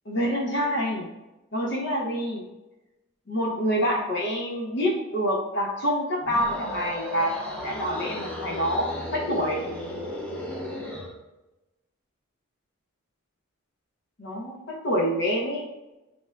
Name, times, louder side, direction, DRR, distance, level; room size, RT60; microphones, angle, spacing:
voice 1, 0.1-1.1 1.5-2.4 3.3-7.3 7.6-9.6 14.2-15.6, equal, 55° left, -1 dB, 0.6 m, -27 dB
sound 1, 6.2-11.1, left 1 dB, 5° left, 0.4 m, -35 dB
2.5 x 2.2 x 3.3 m, 1.0 s
head